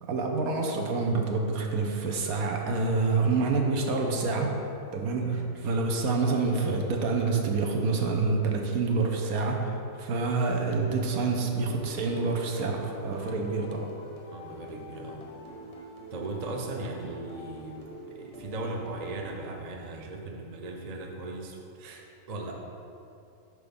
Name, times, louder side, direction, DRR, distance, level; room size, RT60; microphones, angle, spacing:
voice 1, 0.0-4.5 4.9-13.9, right 3 dB, 75° right, 1 dB, 1.2 m, -27 dB
sound 1, 11.0-19.9, left 1 dB, 30° left, 0.7 m, -46 dB
voice 2, 13.1-13.5 14.3-15.3 16.1-17.8 18.1-22.5, right 2 dB, 40° right, 0 dB, 0.5 m, -38 dB
6.4 x 4.8 x 5.2 m, 2.7 s
omnidirectional pair, 1.6 m